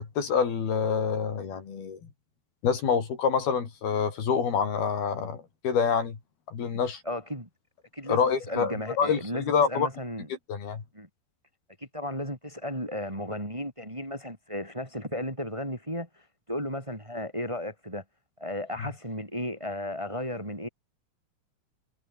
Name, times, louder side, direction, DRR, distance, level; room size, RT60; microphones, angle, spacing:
voice 1, 0.0-2.0 2.6-6.2 6.5-7.0 8.1-9.9 10.5-10.8, left 6 dB, 70° left, 5.7 m, -27 dB
voice 2, 6.6-7.5 7.9-10.3 10.9-11.1 11.8-16.1 16.5-18.0 18.4-20.7, left 1 dB, 5° right, 4.3 m, -34 dB
omnidirectional pair, 4.7 m